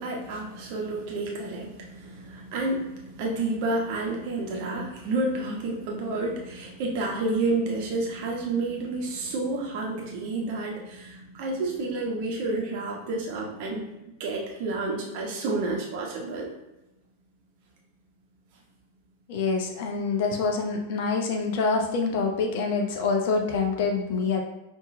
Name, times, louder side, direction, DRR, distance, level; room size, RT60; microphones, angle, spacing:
voice 1, 0.0-13.9 14.2-16.5, right 2 dB, 45° right, -2 dB, 1.1 m, -30 dB
voice 2, 19.3-24.4, left 4 dB, 50° left, 2 dB, 0.7 m, -26 dB
5.7 x 2.9 x 2.7 m, 0.97 s
figure-of-eight pair, 90°, 0 cm